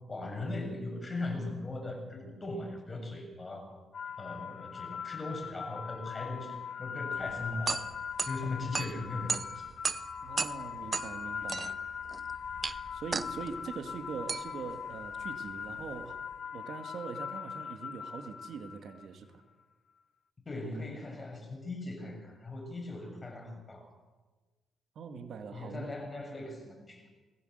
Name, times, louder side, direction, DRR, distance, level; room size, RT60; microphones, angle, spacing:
voice 1, 0.1-3.8 4.2-7.8 8.3-9.7 20.5-23.9 25.2-25.3 25.5-27.1, left 2 dB, 25° left, 4 dB, 7.4 m, -39 dB
sound 1, 3.9-19.1, left 7 dB, 50° left, 0.8 m, -41 dB
sound 2, 7.2-16.3, right 4 dB, 30° right, 0.7 m, -38 dB
voice 2, 10.2-11.7 12.9-16.2 16.5-19.4 25.0-26.0, right 5 dB, 60° right, 6 dB, 2.2 m, -42 dB
21.5 x 19.0 x 8.1 m, 1.3 s
cardioid pair, 90°, 0 cm